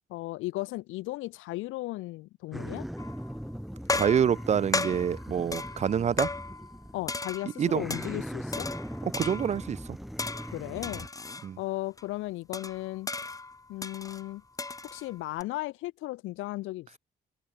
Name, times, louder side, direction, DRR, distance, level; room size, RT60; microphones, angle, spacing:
voice 1, 0.1-2.9 6.9-8.7 10.5-11.1 11.6-13.1 13.7-14.4 14.9-17.0, left 18 dB, 90° left, 0.5 m, -36 dB
sound 1, 2.5-7.2 7.6-11.1, equal, ahead, 1.2 m, -40 dB
sound 2, 3.0-3.4 3.9-6.8 7.1-8.2 8.5-9.7 10.2-11.5 12.0-12.1 12.5-15.4, left 3 dB, 15° left, 0.9 m, -35 dB
voice 2, 3.9-6.3 7.6-7.8 9.0-10.0 11.4-11.6, right 8 dB, 35° right, 0.4 m, -27 dB
cardioid pair, 90°, 20 cm